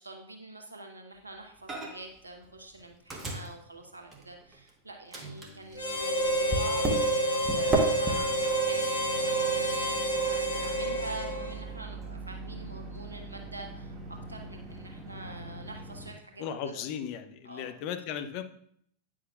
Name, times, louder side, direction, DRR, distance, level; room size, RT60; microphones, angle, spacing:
voice 1, 0.0-6.9 7.2-16.8 17.4-17.7, right 2 dB, 80° right, 3 dB, 1.0 m, -45 dB
Microwave oven, 1.7-2.2 2.4-4.7 5.1-16.1, right 1 dB, 20° right, 1.2 m, -37 dB
Harmonica, 5.7-11.7, right 1 dB, 75° left, 1.1 m, -28 dB
voice 2, 16.4-18.4, left 8 dB, 45° left, 9 dB, 0.6 m, -36 dB
9.4 x 6.1 x 2.4 m, 0.66 s
figure-of-eight pair, 90°, 0 cm